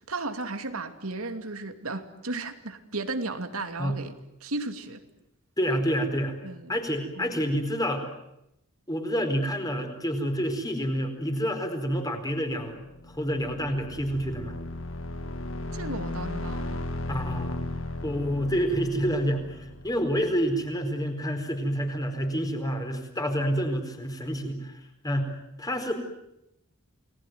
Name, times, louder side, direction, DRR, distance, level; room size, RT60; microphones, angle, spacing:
voice 1, 0.1-4.1 4.4-5.0 6.4-6.8 7.2-7.3 15.7-16.8, right 2 dB, 85° right, 8 dB, 2.6 m, -34 dB
voice 2, 5.6-6.3 6.7-8.0 8.9-12.8 13.1-14.5 17.1-17.6 18.0-25.3 25.6-25.9, equal, 20° left, 5 dB, 4.6 m, -28 dB
sound 1, 12.9-20.5, left 2 dB, 65° left, 1.9 m, -36 dB
29.5 x 20.0 x 9.5 m, 0.85 s
head